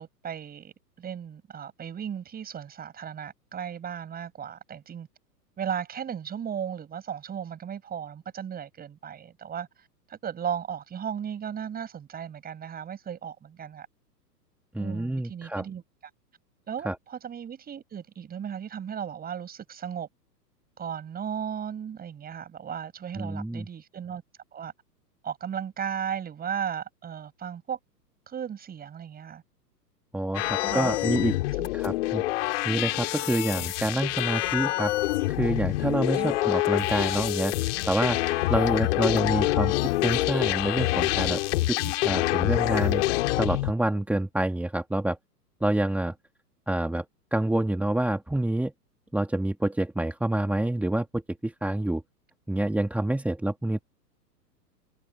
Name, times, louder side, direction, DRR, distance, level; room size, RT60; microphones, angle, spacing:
voice 1, 0.0-5.1 5.6-13.9 14.8-15.8 16.7-20.1 20.8-24.2 24.5-24.7 25.2-27.8 28.3-29.4 30.4-31.0 31.6-31.7 36.1-36.4, right 8 dB, 20° right, 6.7 m, -36 dB
voice 2, 14.7-15.6 16.8-17.0 23.2-23.7 30.1-31.4 31.7-32.2 32.6-34.9 35.3-37.5 37.9-43.0 43.4-45.2 45.6-46.1 46.7-47.0 47.3-48.7 49.1-52.0 52.5-53.8, right 1 dB, 5° right, 3.1 m, -27 dB
sound 1, 30.3-43.7, left 18 dB, 45° left, 3.8 m, -26 dB
figure-of-eight pair, 105°, 49 cm